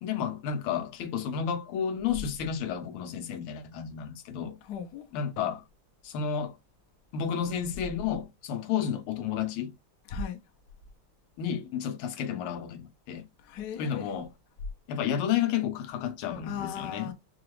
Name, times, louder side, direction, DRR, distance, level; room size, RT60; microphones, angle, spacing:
voice 1, 0.0-4.6 5.1-5.6 6.0-6.6 7.1-9.7 11.4-13.3 13.8-14.3 14.9-17.1, left 8 dB, 80° left, 1.6 m, -31 dB
voice 2, 4.7-5.1 10.1-10.4 13.4-14.1 16.4-17.1, left 7 dB, 65° left, 1.0 m, -37 dB
4.9 x 2.3 x 3.0 m
omnidirectional pair, 2.4 m